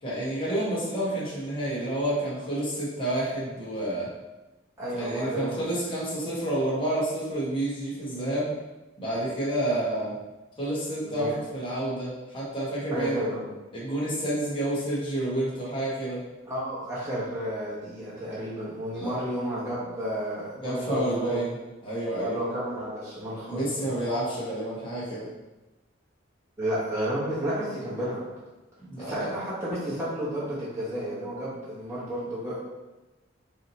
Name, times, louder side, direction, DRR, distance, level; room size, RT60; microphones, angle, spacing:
voice 1, 0.0-4.1 4.9-8.5 9.0-10.1 10.6-13.2 13.7-16.2 18.9-19.2 20.6-21.5 21.8-22.4 23.4-25.3 28.8-29.3, right 1 dB, 25° left, -8 dB, 1.3 m, -29 dB
voice 2, 4.8-5.6 11.0-11.3 12.9-13.4 16.5-21.4 22.2-23.9 26.6-28.3 29.0-32.6, equal, 15° right, -10 dB, 1.0 m, -31 dB
4.8 x 2.8 x 2.8 m, 1.1 s
head